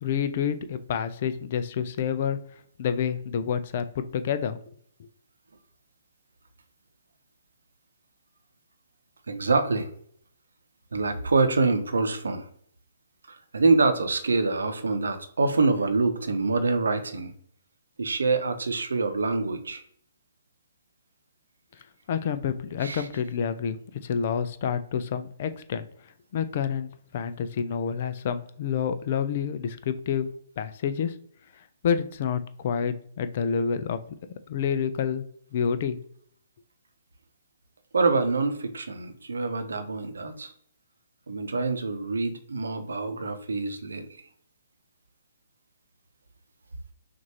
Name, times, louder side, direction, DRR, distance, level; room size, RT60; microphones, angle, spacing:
voice 1, 0.0-2.4 2.8-4.6 22.1-23.8 24.0-25.8 26.3-30.3 30.6-31.1 31.8-34.0 34.5-35.2 35.5-36.0, left 7 dB, 45° left, 11 dB, 0.5 m, -28 dB
voice 2, 9.3-9.9 10.9-12.5 13.3-17.3 18.0-19.8 22.8-23.1 37.9-40.5 41.3-44.1, right 3 dB, 75° right, 8 dB, 0.8 m, -25 dB
5.9 x 2.6 x 2.9 m, 0.63 s
figure-of-eight pair, 130°, 0 cm